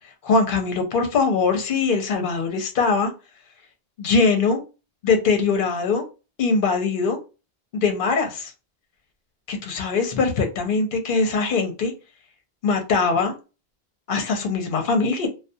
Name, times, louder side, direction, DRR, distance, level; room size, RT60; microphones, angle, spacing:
voice 1, 0.2-3.1 4.0-4.6 5.0-6.0 6.4-7.2 7.7-8.5 9.5-11.9 12.6-13.3 14.1-15.3, left 4 dB, 60° left, 5 dB, 0.8 m, -22 dB
2.3 x 2.3 x 2.6 m, 0.31 s
omnidirectional pair, 1.0 m